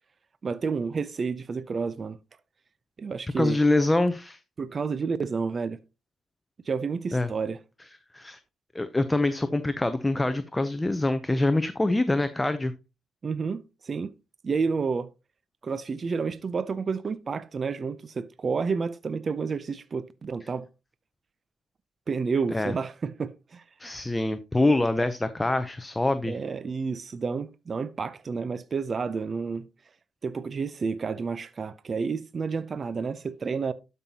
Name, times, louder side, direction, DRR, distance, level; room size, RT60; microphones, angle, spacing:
voice 1, 0.4-2.2 3.0-3.6 4.6-5.8 6.7-7.6 13.2-14.1 14.4-15.1 15.6-20.7 22.1-23.6 26.2-29.7 30.2-33.7, right 5 dB, 40° right, 0.5 m, -30 dB
voice 2, 3.4-4.4 7.1-7.3 8.1-8.4 8.7-12.7 22.5-22.7 23.8-26.4, left 2 dB, 15° left, 0.6 m, -25 dB
12.0 x 5.5 x 2.8 m
cardioid pair, 90°, 0 cm